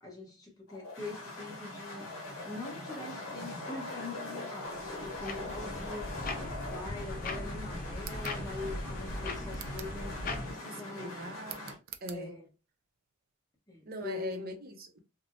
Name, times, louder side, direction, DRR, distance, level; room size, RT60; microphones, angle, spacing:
voice 1, 0.0-2.1 2.4-11.2 12.1-12.4 13.7-14.4, left 3 dB, 20° left, 1.1 m, -43 dB
sound 1, 0.7-11.8, left 2 dB, 80° left, 0.7 m, -42 dB
sound 2, 4.7-10.5, left 2 dB, 45° left, 0.5 m, -39 dB
voice 2, 5.3-5.8 10.6-11.7 12.0-12.3 13.9-15.0, equal, 45° right, 0.7 m, -42 dB
sound 3, 8.0-8.4 9.5-10.0 11.4-12.2, right 12 dB, 85° right, 0.4 m, -46 dB
3.3 x 2.1 x 2.6 m
head